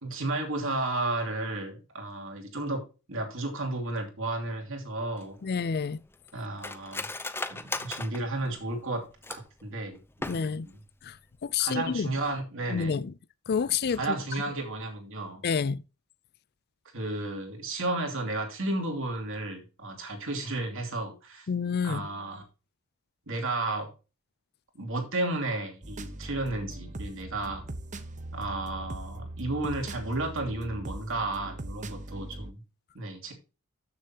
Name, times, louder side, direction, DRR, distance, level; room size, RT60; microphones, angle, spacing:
voice 1, 0.0-2.8 3.1-5.4 6.3-7.1 7.5-10.8 11.6-12.9 13.9-15.5 16.9-21.5 21.8-22.4 23.3-23.9 24.8-27.6 28.3-32.6 32.9-33.3, right 2 dB, 65° right, 2.9 m, -33 dB
Cutlery silverware, 5.2-9.6 10.1-10.8 11.1-11.2 11.5-11.9 12.2-12.4, left 2 dB, 10° left, 0.9 m, -38 dB
voice 2, 5.4-6.0 10.3-10.7 11.0-11.2 11.4-12.1 12.7-13.1 13.5-14.2 15.4-15.8 21.5-22.1, left 6 dB, 50° left, 0.4 m, -28 dB
sound 1, 25.8-32.5, right 1 dB, 35° right, 0.9 m, -40 dB
13.5 x 6.8 x 2.9 m
head